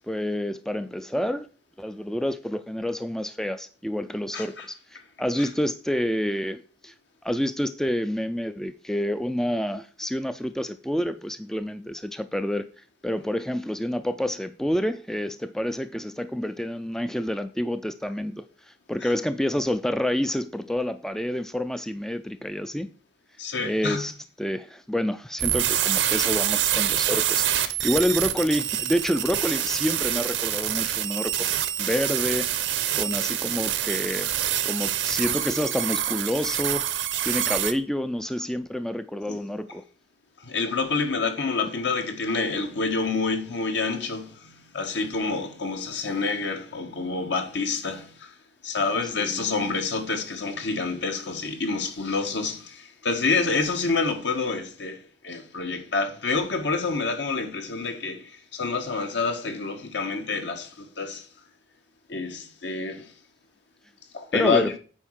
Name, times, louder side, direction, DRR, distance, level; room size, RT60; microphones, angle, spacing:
voice 1, 0.1-1.5 1.8-4.7 5.2-6.9 7.2-12.7 13.0-22.9 23.6-24.1 24.4-31.5 31.8-32.5 32.9-34.3 34.6-39.8 49.2-49.5 64.3-64.7, equal, 5° left, 0.3 m, -28 dB
voice 2, 4.3-4.7 5.4-5.5 19.0-19.1 23.4-24.0 39.3-39.4 40.4-48.3 48.6-61.3 62.1-63.1 64.1-64.6, left 4 dB, 70° left, 1.5 m, -28 dB
sound 1, 25.4-37.7, right 11 dB, 85° right, 0.9 m, -26 dB
9.0 x 4.4 x 6.3 m
head